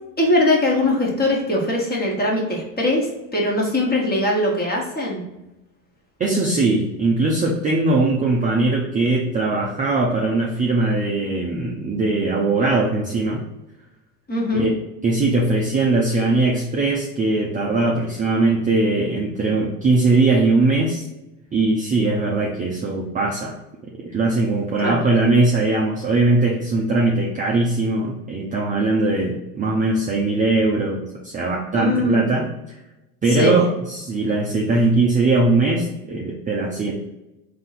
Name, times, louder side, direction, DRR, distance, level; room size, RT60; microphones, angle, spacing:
voice 1, 0.2-5.2 14.3-14.7 24.8-25.0 31.7-32.2 33.3-33.6, left 1 dB, 20° left, -2 dB, 1.2 m, -21 dB
voice 2, 6.2-13.4 14.5-14.7 15.0-21.1 21.5-23.5 24.0-32.4 33.2-36.9, right 2 dB, 15° right, -2 dB, 0.5 m, -20 dB
3.6 x 2.8 x 4.1 m, 0.96 s
supercardioid pair, 115°, 49 cm